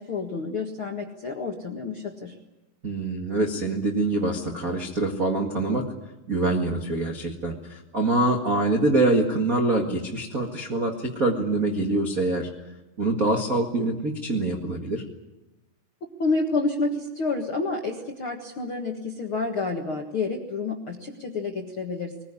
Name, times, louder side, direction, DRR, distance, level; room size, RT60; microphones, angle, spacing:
voice 1, 0.0-2.3 16.2-22.2, left 3 dB, 60° left, 1 dB, 1.3 m, -29 dB
voice 2, 2.8-5.8 6.3-12.5 13.0-15.0, right 2 dB, 55° right, -1 dB, 0.9 m, -25 dB
22.0 x 20.0 x 9.8 m, 1.0 s
omnidirectional pair, 5.0 m